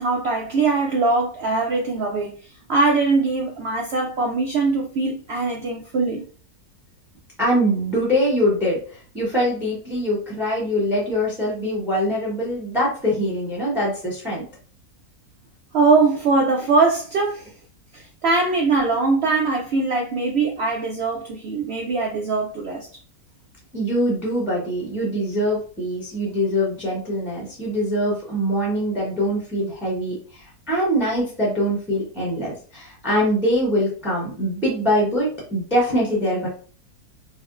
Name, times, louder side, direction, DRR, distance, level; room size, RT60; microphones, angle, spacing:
voice 1, 0.0-2.3 2.7-6.2 15.7-17.5 17.9-22.9, right 3 dB, 75° right, 0.6 m, -21 dB
voice 2, 7.4-14.4 23.7-36.5, equal, ahead, 0.8 m, -23 dB
4.2 x 2.0 x 2.4 m
omnidirectional pair, 1.6 m